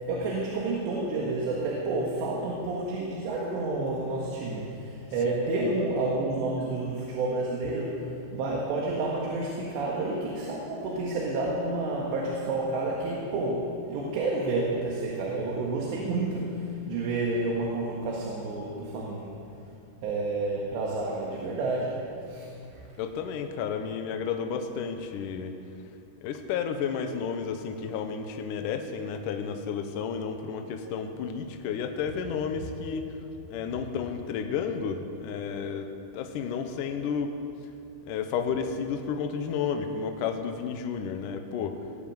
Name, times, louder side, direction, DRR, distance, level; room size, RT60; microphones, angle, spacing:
voice 1, 0.1-19.4 20.0-22.9, right 2 dB, 75° right, -3 dB, 3.8 m, -30 dB
voice 2, 5.3-5.6 23.0-25.6 26.2-33.2 33.5-37.4 38.1-41.8, left 6 dB, 85° left, 6 dB, 1.8 m, -32 dB
18.0 x 10.5 x 7.7 m, 2.6 s
omnidirectional pair, 5.1 m